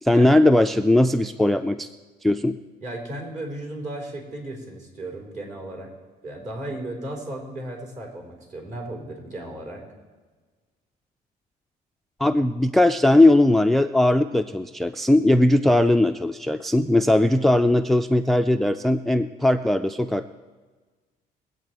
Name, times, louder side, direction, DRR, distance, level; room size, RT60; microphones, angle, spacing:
voice 1, 0.0-1.9 2.2-2.6 12.2-20.3, left 1 dB, ahead, 11 dB, 0.3 m, -19 dB
voice 2, 2.8-5.9 6.2-9.8, right 1 dB, 50° right, 1 dB, 4.2 m, -35 dB
22.0 x 8.4 x 4.6 m, 1.4 s
cardioid pair, 110°, 17 cm